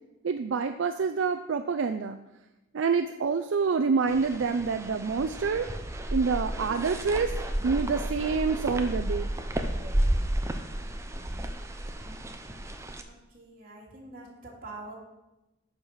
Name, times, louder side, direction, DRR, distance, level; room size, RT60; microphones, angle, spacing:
voice 1, 0.2-2.2 2.7-5.7 6.1-7.3 7.6-9.3, right 5 dB, 75° right, 7 dB, 0.4 m, -27 dB
sound 1, 4.1-13.0, right 1 dB, 15° right, 0.6 m, -32 dB
voice 2, 13.1-14.9, right 2 dB, 45° right, -3 dB, 2.6 m, -45 dB
10.0 x 4.8 x 5.6 m, 0.98 s
head